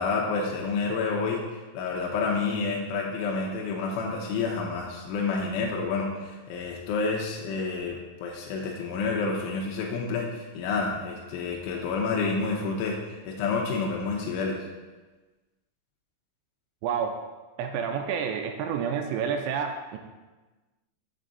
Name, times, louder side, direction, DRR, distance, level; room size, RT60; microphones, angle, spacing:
voice 1, 0.0-1.4 1.7-14.6, left 4 dB, 90° left, -1 dB, 3.3 m, -29 dB
voice 2, 16.8-17.1 17.6-20.0, right 7 dB, 85° right, 4 dB, 2.6 m, -29 dB
7.6 x 7.4 x 4.0 m, 1.2 s
omnidirectional pair, 5.5 m